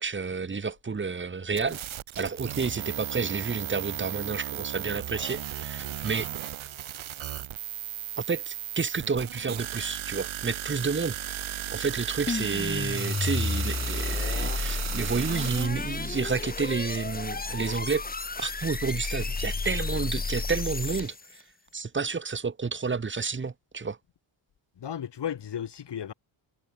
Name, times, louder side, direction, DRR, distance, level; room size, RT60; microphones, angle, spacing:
voice 1, 0.0-1.8 2.2-6.3 8.2-11.2 11.7-18.0 18.4-21.4 21.7-24.0, right 5 dB, 25° right, 2.0 m, -30 dB
sound 1, 1.6-15.7, right 11 dB, 70° right, 3.6 m, -35 dB
sound 2, 12.3-21.4, left 3 dB, 20° left, 2.1 m, -32 dB
voice 2, 24.8-26.1, left 9 dB, 55° left, 6.7 m, -34 dB
wide cardioid pair, 160°, 48 cm